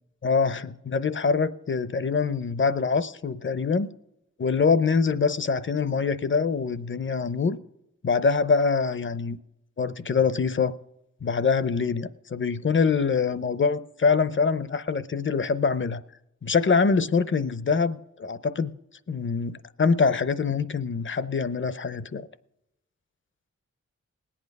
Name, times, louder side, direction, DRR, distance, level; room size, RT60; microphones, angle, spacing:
voice 1, 0.2-3.9 4.4-7.6 8.0-9.4 9.8-10.7 11.2-16.0 16.4-18.7 19.1-22.3, left 5 dB, 40° left, 0.7 m, -24 dB
19.5 x 8.6 x 5.3 m
wide cardioid pair, 85°, 29 cm